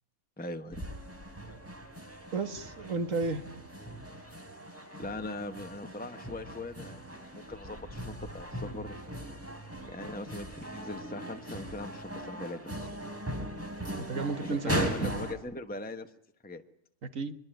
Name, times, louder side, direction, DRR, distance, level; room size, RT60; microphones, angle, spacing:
voice 1, 0.4-0.8 5.0-8.9 9.9-12.9 14.4-16.1 16.4-16.6, left 2 dB, 5° left, 7 dB, 1.2 m, -40 dB
sound 1, 0.7-15.3, right 1 dB, 10° right, 3.5 m, -39 dB
voice 2, 2.3-3.4 14.0-15.1 17.0-17.4, right 4 dB, 60° right, 10 dB, 1.9 m, -33 dB
24.0 x 22.5 x 9.1 m, 0.67 s
omnidirectional pair, 1.5 m